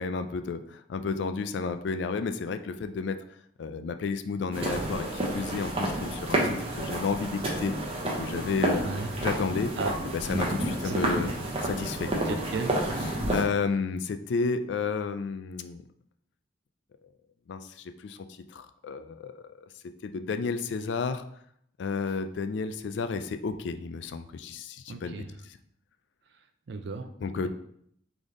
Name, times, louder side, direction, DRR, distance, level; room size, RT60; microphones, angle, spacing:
voice 1, 0.0-3.2 3.6-7.9 8.1-8.8 9.2-9.7 10.1-11.3 11.6-12.4 13.3-15.8 17.5-19.5 20.0-21.2 21.8-25.1 27.2-27.5, left 4 dB, 70° left, 9 dB, 0.3 m, -32 dB
sound 1, 4.5-13.4, right 1 dB, 30° right, 0.8 m, -30 dB
voice 2, 12.2-12.8 24.9-25.3 26.7-27.1, right 3 dB, 65° right, 7 dB, 0.5 m, -34 dB
4.0 x 3.3 x 3.7 m, 0.70 s
head